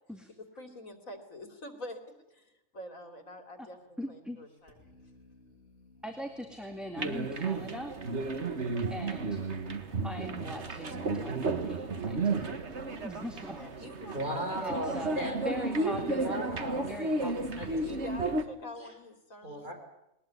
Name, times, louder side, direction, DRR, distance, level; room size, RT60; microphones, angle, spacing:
voice 1, 0.4-2.0 2.3-4.9 13.6-14.2 17.8-19.6, left 1 dB, 85° left, 7 dB, 3.5 m, -46 dB
sound 1, 3.7-16.9, equal, 45° left, 8.0 m, -58 dB
voice 2, 4.0-4.4 6.0-7.9 8.9-9.4 10.0-12.7 13.0-13.6 14.6-16.4 16.9-18.0, equal, ahead, 2 dB, 2.3 m, -41 dB
sound 2, 7.0-18.4, right 3 dB, 55° right, 1.9 m, -33 dB
voice 3, 14.1-15.4 15.9-16.9 17.6-17.7 19.4-19.7, equal, 35° right, 2 dB, 6.0 m, -36 dB
21.0 x 20.5 x 9.6 m, 0.87 s
omnidirectional pair, 1.4 m